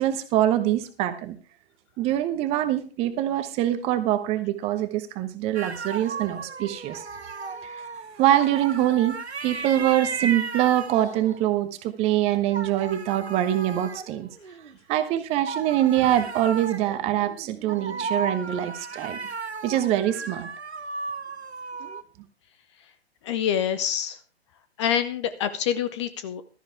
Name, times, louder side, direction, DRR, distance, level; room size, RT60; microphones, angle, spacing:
voice 1, 0.0-1.4 2.0-7.0 7.6-7.8 8.2-9.2 9.4-14.3 14.9-19.2 19.6-20.5, right 12 dB, 20° right, 10 dB, 1.1 m, -24 dB
sound 1, 5.5-11.5 12.3-14.7 15.5-22.0, right 4 dB, 80° right, 1.2 m, -35 dB
voice 2, 23.2-24.2 24.8-26.4, left 9 dB, 25° left, 12 dB, 0.8 m, -26 dB
15.5 x 13.0 x 3.5 m, 0.35 s
figure-of-eight pair, 125°, 32 cm